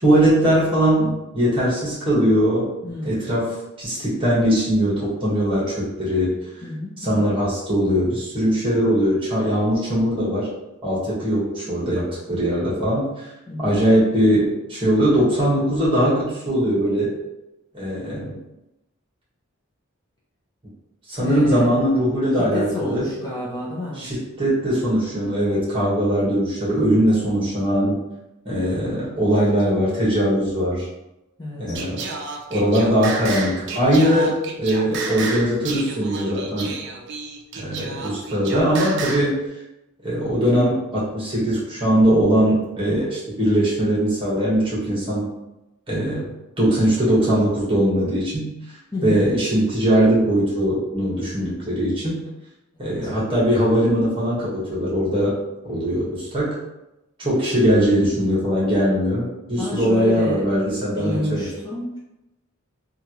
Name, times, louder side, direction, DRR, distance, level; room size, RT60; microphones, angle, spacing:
voice 1, 0.0-2.7 3.0-3.5 3.8-6.3 7.0-10.5 10.8-13.1 13.6-17.1 17.7-18.3 21.1-23.1 23.9-28.0 28.4-30.9 31.6-32.0 32.5-36.7 37.5-39.4 40.0-45.3 45.9-46.3 46.6-48.5 49.0-52.2 52.8-55.3 55.6-56.5 57.2-61.5, equal, 25° right, -7 dB, 1.2 m, -20 dB
voice 2, 2.8-3.4 6.6-7.3 13.5-13.7 21.2-21.8 22.4-24.0 26.7-27.0 31.4-31.8 48.9-49.4 52.7-53.1 59.6-60.4 61.0-62.0, left 2 dB, 20° left, -7 dB, 0.6 m, -30 dB
Singing, 31.8-39.3, right 4 dB, 55° right, 0.4 m, -31 dB
3.1 x 2.4 x 2.9 m, 0.95 s
head